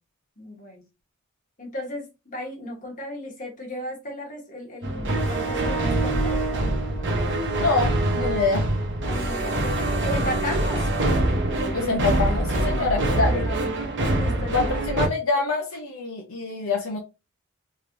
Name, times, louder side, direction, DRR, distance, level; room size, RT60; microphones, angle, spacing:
voice 1, 0.4-0.8 1.6-6.4 9.0-11.1 13.1-13.7 14.2-15.0, left 1 dB, 40° left, 1.2 m, -35 dB
sound 1, 4.8-15.1, right 1 dB, 60° right, 0.8 m, -24 dB
voice 2, 7.6-8.6 11.7-13.5 14.5-17.0, left 3 dB, 75° left, 0.7 m, -25 dB
3.1 x 2.9 x 2.6 m
head